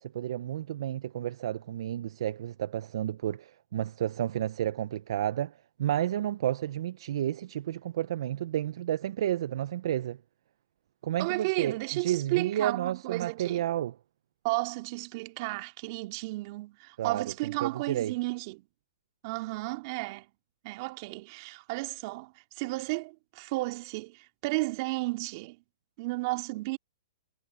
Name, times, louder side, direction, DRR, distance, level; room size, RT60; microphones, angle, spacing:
voice 1, 0.0-5.5 5.8-10.2 11.0-14.0 17.0-18.1, right 11 dB, 60° right, 0.9 m, -31 dB
voice 2, 11.2-13.6 14.4-18.7 19.2-20.3 20.6-25.6 26.0-26.8, right 24 dB, 45° right, 2.6 m, -33 dB
hypercardioid pair, 130°, 3 cm